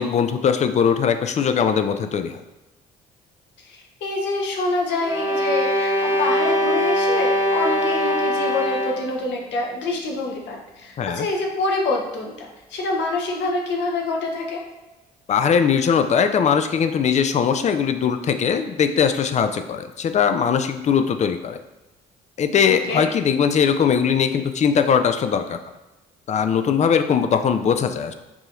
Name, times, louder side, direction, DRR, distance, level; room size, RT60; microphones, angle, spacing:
voice 1, 0.0-2.3 11.0-11.3 15.3-21.6 22.4-25.6 26.3-28.1, left 7 dB, 35° left, 8 dB, 0.4 m, -20 dB
voice 2, 3.7-14.6 22.9-23.1, left 2 dB, 65° left, 0 dB, 0.9 m, -26 dB
sound 1, 5.0-9.2, left 1 dB, 15° right, 1.0 m, -22 dB
4.8 x 2.8 x 2.5 m, 1.1 s
hypercardioid pair, 55°, 20 cm